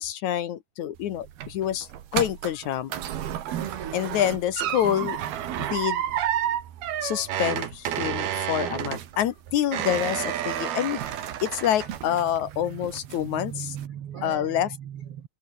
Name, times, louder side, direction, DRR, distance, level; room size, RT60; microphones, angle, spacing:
voice 1, 0.0-2.9 3.9-5.2 5.6-6.0 7.0-13.8 14.2-14.8, left 11 dB, 65° left, 2.1 m, -27 dB
sound 1, 1.0-12.5 12.8-13.4 13.8-13.9, right 11 dB, 80° right, 3.9 m, -31 dB
voice 2, 3.6-4.0 12.6-15.3, right 9 dB, 60° right, 1.5 m, -38 dB
omnidirectional pair, 4.4 m